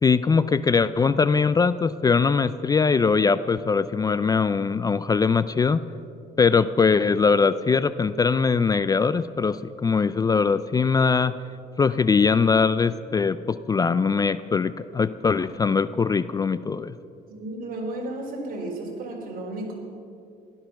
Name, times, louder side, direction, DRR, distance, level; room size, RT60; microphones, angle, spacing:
voice 1, 0.0-5.8 6.4-11.3 11.8-17.0, left 5 dB, 20° left, 15 dB, 0.4 m, -21 dB
voice 2, 17.3-19.7, right 2 dB, 60° right, 0 dB, 4.0 m, -33 dB
16.0 x 12.5 x 5.9 m, 2.5 s
cardioid pair, 110°, 17 cm